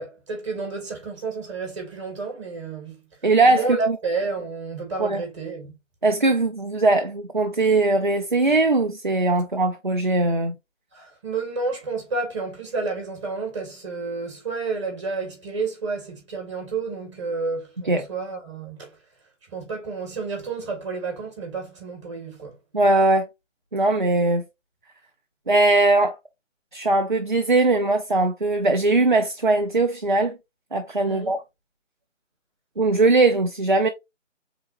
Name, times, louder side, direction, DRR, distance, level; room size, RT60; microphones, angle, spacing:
voice 1, 0.0-3.0 3.4-5.7 10.9-19.0 19.5-22.6 31.0-31.4, right 4 dB, 25° right, 1.8 m, -30 dB
voice 2, 3.2-3.9 5.0-5.2 6.0-10.6 17.9-18.0 22.7-23.3 23.7-24.4 25.5-26.2 26.7-30.4 30.7-31.4 32.8-33.9, right 2 dB, 40° right, 0.5 m, -20 dB
4.3 x 3.7 x 2.9 m
figure-of-eight pair, 155°, 38 cm